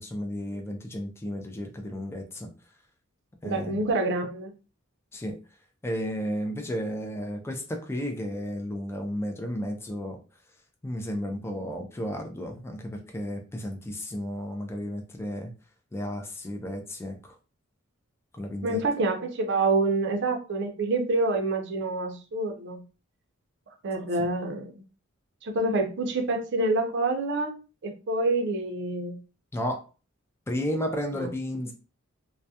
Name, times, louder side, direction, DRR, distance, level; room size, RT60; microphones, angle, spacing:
voice 1, 0.0-2.5 3.4-3.9 5.1-5.4 5.8-10.2 10.8-15.5 15.9-17.4 18.3-18.8 24.2-24.3 29.5-29.9 30.5-31.7, equal, 10° left, 3 dB, 0.4 m, -33 dB
voice 2, 3.4-4.5 18.6-22.8 23.8-24.8 25.4-27.6 27.8-29.2 31.1-31.3, right 2 dB, 60° right, 4 dB, 0.5 m, -27 dB
2.3 x 2.1 x 2.7 m, 0.33 s
head